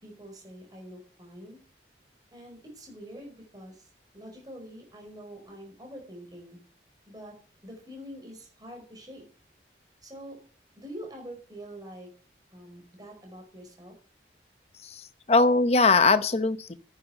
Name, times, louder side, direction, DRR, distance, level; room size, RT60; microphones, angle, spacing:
voice 1, 0.0-1.6 2.3-3.9 4.1-6.6 7.1-7.3 7.6-9.2 10.0-10.4 10.8-12.1 12.5-14.0, equal, 20° right, 1 dB, 5.2 m, -45 dB
voice 2, 14.8-16.7, left 3 dB, 35° left, 12 dB, 0.8 m, -21 dB
10.0 x 9.0 x 6.5 m, 0.42 s
head